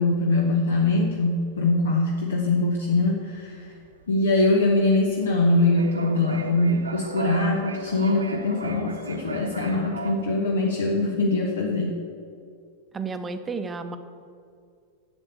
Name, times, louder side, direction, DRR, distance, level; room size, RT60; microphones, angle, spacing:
voice 1, 0.0-3.7 4.1-11.9, left 2 dB, 65° left, 0 dB, 1.1 m, -23 dB
sound 1, 0.6-10.1, right 3 dB, 75° right, 0.9 m, -37 dB
voice 2, 12.9-14.0, right 4 dB, 15° right, 9 dB, 0.8 m, -31 dB
8.5 x 7.2 x 8.3 m, 2.3 s
figure-of-eight pair, 90°, 0 cm